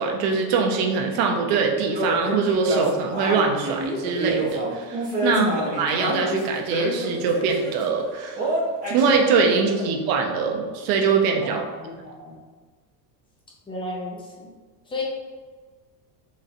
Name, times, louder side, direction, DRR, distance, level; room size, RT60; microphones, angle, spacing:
voice 1, 0.0-5.5 5.8-8.4 8.9-11.6, right 5 dB, 75° right, 2 dB, 0.8 m, -23 dB
sound 1, 1.9-7.8 8.4-9.1, right 1 dB, 15° right, 0.8 m, -28 dB
voice 2, 5.3-5.6 9.5-9.9 11.4-12.4 13.7-14.5 14.9-15.0, left 2 dB, 10° left, -3 dB, 0.5 m, -33 dB
4.2 x 3.1 x 2.5 m, 1.4 s
cardioid pair, 150°, 47 cm